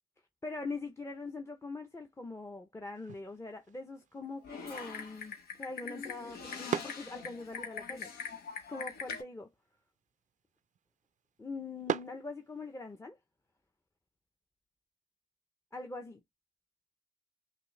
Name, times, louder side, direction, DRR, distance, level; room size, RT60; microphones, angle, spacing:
voice 1, 0.4-9.5 11.4-13.2 15.7-16.2, left 3 dB, 15° left, 0.7 m, -43 dB
sound 1, 2.9-13.0, right 9 dB, 50° right, 0.4 m, -44 dB
Typing, 4.4-9.2, left 5 dB, 80° left, 1.1 m, -42 dB
5.9 x 2.2 x 3.2 m
cardioid pair, 80°, 16 cm